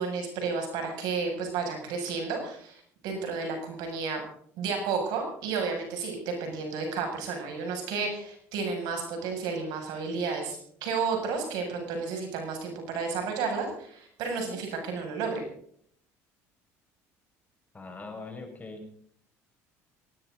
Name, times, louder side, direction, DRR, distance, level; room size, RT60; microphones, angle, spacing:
voice 1, 0.0-4.2 4.6-15.4, right 4 dB, 75° right, 3 dB, 7.4 m, -32 dB
voice 2, 17.7-18.9, left 3 dB, 20° left, 4 dB, 6.2 m, -41 dB
19.5 x 18.0 x 4.1 m, 0.63 s
supercardioid pair, 85°, 7 cm